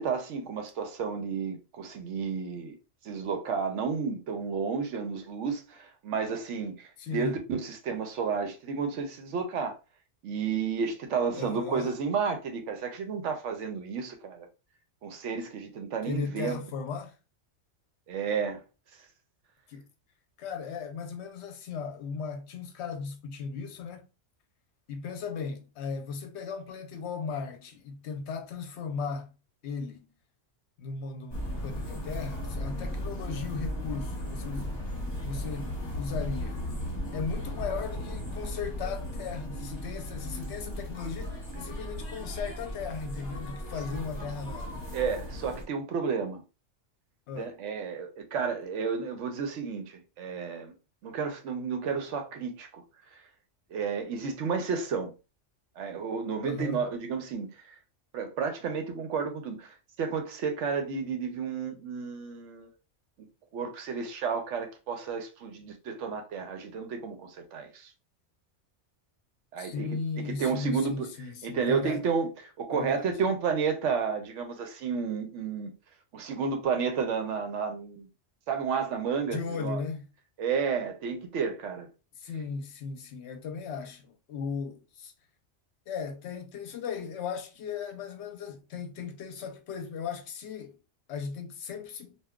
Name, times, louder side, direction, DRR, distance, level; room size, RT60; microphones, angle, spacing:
voice 1, 0.0-2.8 3.0-9.8 10.2-14.5 15.0-16.6 18.1-18.6 44.9-46.4 47.4-50.7 51.0-52.8 53.1-53.2 53.7-55.1 55.8-57.7 58.1-62.7 63.5-67.9 69.5-71.1 71.4-75.7 76.1-78.1 78.5-79.8 80.4-81.9, right 5 dB, 75° right, 0.9 m, -31 dB
voice 2, 7.0-7.4 11.3-11.9 16.1-17.1 19.7-19.8 20.4-24.0 24.9-29.3 29.6-30.1 30.8-34.7 35.2-36.6 37.1-44.7 47.3-47.6 56.4-56.9 69.6-72.0 72.7-73.1 79.3-80.1 82.2-85.1 85.9-90.8 91.1-92.2, left 5 dB, 65° left, 0.9 m, -37 dB
sound 1, 31.3-45.6, left 1 dB, 25° left, 0.9 m, -36 dB
3.5 x 2.4 x 2.2 m
omnidirectional pair, 1.3 m